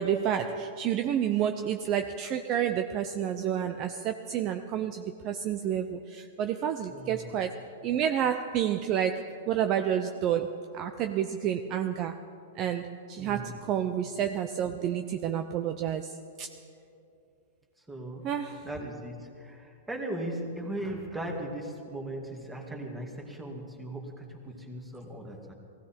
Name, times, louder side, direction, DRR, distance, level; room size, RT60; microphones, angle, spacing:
voice 1, 0.0-12.2 12.6-16.5 18.2-18.7, right 9 dB, 35° right, 0.6 m, -30 dB
voice 2, 6.9-7.4 13.1-13.6 17.8-18.3 18.6-25.5, right 1 dB, 10° right, 2.3 m, -38 dB
20.0 x 16.0 x 4.4 m
hypercardioid pair, 135°, 0 cm